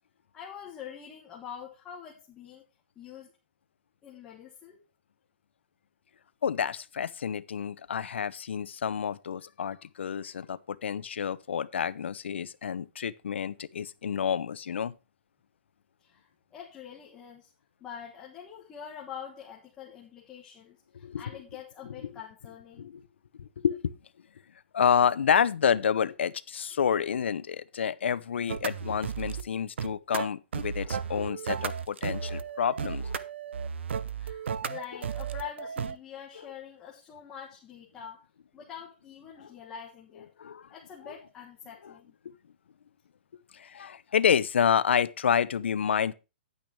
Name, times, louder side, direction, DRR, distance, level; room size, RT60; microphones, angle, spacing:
voice 1, 0.3-2.6 2.9-3.3 4.0-4.8 16.0-17.5 17.8-22.9 34.2-38.2 38.5-40.3 40.7-42.1, left 8 dB, 10° left, 1.4 m, -45 dB
voice 2, 6.4-14.9 21.0-21.2 22.8-23.0 23.4-23.9 24.7-33.1 39.4-39.5 40.4-40.7 41.0-41.1 41.8-41.9 43.5-46.1, left 7 dB, 80° left, 0.7 m, -29 dB
sound 1, 28.5-29.4 29.8-36.0, right 7 dB, 80° right, 0.8 m, -34 dB
10.5 x 9.1 x 3.2 m
hypercardioid pair, 175°, 6 cm